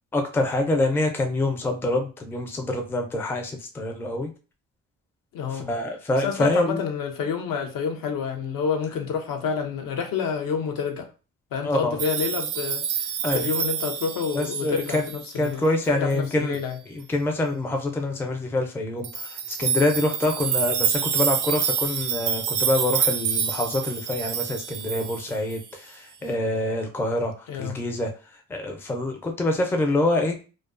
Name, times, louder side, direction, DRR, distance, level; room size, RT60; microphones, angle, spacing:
voice 1, 0.1-4.3 5.5-6.8 11.6-12.0 13.2-13.5 14.3-15.0 15.4-16.6 16.9-28.1 28.5-30.4, left 2 dB, 5° left, 0.4 m, -26 dB
voice 2, 5.3-5.7 6.2-11.1 11.5-16.8 27.5-27.8, left 6 dB, 70° left, 0.7 m, -29 dB
sound 1, 12.0-15.5 16.1-16.2 16.5-16.6 19.0-25.7, right 7 dB, 60° right, 0.5 m, -27 dB
2.3 x 2.2 x 2.4 m
supercardioid pair, 80°, 35 cm